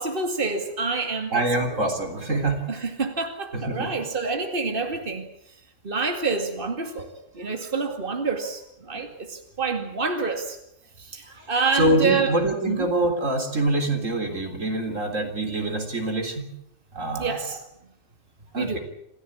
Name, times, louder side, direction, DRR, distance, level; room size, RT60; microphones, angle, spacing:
voice 1, 0.0-1.8 2.7-5.3 5.8-7.1 7.3-10.6 11.0-12.3 12.7-12.9 17.2-17.6 18.6-18.8, right 4 dB, 45° right, 5 dB, 2.6 m, -27 dB
voice 2, 1.3-2.8 3.5-3.9 8.9-9.0 11.3-11.5 11.7-16.5 16.9-17.4 18.5-18.8, right 2 dB, 90° right, 5 dB, 4.1 m, -25 dB
27.0 x 15.5 x 8.7 m, 0.78 s
omnidirectional pair, 1.3 m